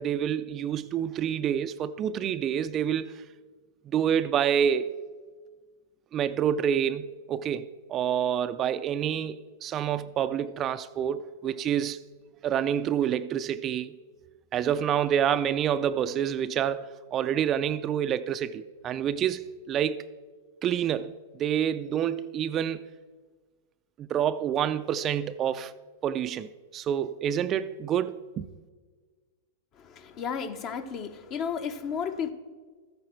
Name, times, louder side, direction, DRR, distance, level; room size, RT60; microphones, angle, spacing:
voice 1, 0.0-3.2 3.9-5.0 6.1-12.0 12.4-14.0 14.5-20.0 20.6-22.8 24.0-25.7 26.0-28.5, right 9 dB, 30° right, 0.4 m, -28 dB
voice 2, 29.7-32.3, left 7 dB, 40° left, 0.9 m, -33 dB
13.5 x 8.6 x 4.5 m
hypercardioid pair, 120°, 0 cm